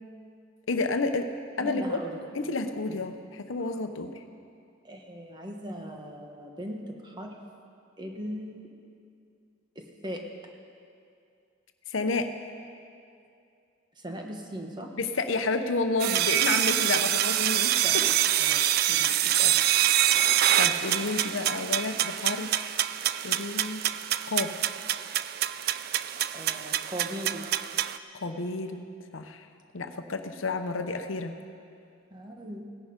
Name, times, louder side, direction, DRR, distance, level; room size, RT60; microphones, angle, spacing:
voice 1, 0.7-1.3 1.6-2.0 2.3-4.1 11.9-12.3 15.0-18.0 18.9-19.0 20.6-22.7 23.2-23.8 24.3-24.6 28.1-28.9 29.1-29.5 29.7-31.4, left 3 dB, 85° left, 7 dB, 0.8 m, -30 dB
voice 2, 1.6-2.2 2.9-3.0 3.6-3.7 4.8-7.4 8.0-8.7 9.7-10.2 14.0-14.9 17.8-18.1 18.4-19.6 26.3-27.6 32.1-32.7, equal, 20° right, 2 dB, 1.2 m, -39 dB
sound 1, 16.0-28.0, right 12 dB, 50° right, 0.3 m, -26 dB
17.0 x 10.5 x 5.2 m, 2.5 s
head